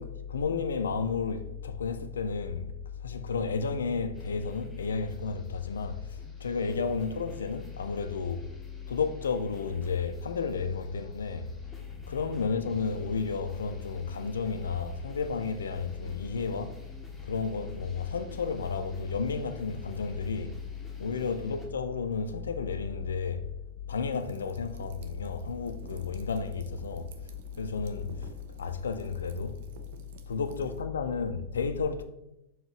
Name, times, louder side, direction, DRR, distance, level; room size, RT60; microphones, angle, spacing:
voice 1, 0.0-2.7 3.0-8.4 8.9-11.5 12.1-16.8 17.2-20.5 21.0-23.4 23.9-27.1 27.6-28.3 28.6-29.6 30.3-32.0, left 5 dB, 70° left, 0.3 m, -32 dB
sound 1, 4.1-21.7, equal, 5° left, 0.7 m, -51 dB
sound 2, 24.1-30.8, right 5 dB, 55° right, 0.4 m, -52 dB
4.4 x 2.7 x 3.1 m
figure-of-eight pair, 90°, 0 cm